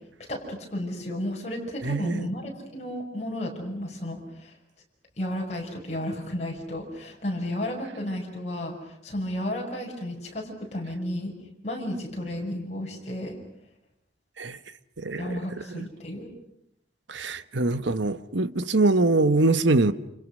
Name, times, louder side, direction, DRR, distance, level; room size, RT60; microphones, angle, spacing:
voice 1, 0.3-4.5 5.2-11.3 11.6-13.4 15.2-16.3, left 1 dB, 35° left, 6.7 m, -33 dB
voice 2, 1.8-2.3 14.4-14.6 15.0-15.4 15.7-15.8 17.1-19.9, right 2 dB, 80° right, 1.3 m, -23 dB
29.5 x 28.5 x 6.4 m
head